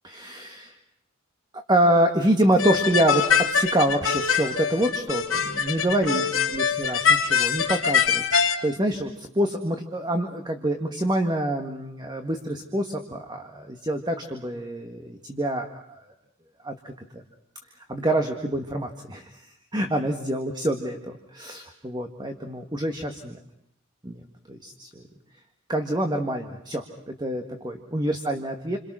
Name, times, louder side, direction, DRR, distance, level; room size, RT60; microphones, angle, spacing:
voice 1, 0.0-0.7 1.5-16.0 16.6-17.2 17.9-19.5 19.7-23.4 24.0-24.2 24.5-25.0 25.7-28.8, right 1 dB, 20° right, 4 dB, 1.8 m, -26 dB
sound 1, 2.6-8.5, left 6 dB, 75° left, 2.9 m, -23 dB
29.0 x 26.5 x 6.3 m, 0.74 s
head